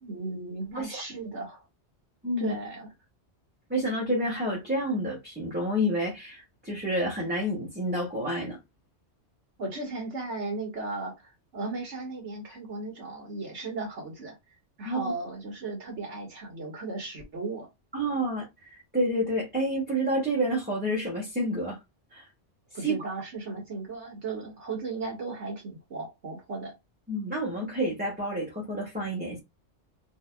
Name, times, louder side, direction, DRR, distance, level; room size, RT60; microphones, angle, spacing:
voice 1, 0.0-1.6 2.4-2.9 9.6-14.4 14.8-17.7 22.7-26.7, right 3 dB, 85° right, 2.0 m, -36 dB
voice 2, 2.2-2.5 3.7-8.6 14.8-15.1 17.9-21.8 22.1-22.3 22.8-22.9 27.1-29.4, equal, 10° right, 1.3 m, -29 dB
4.3 x 2.9 x 2.3 m
omnidirectional pair, 1.2 m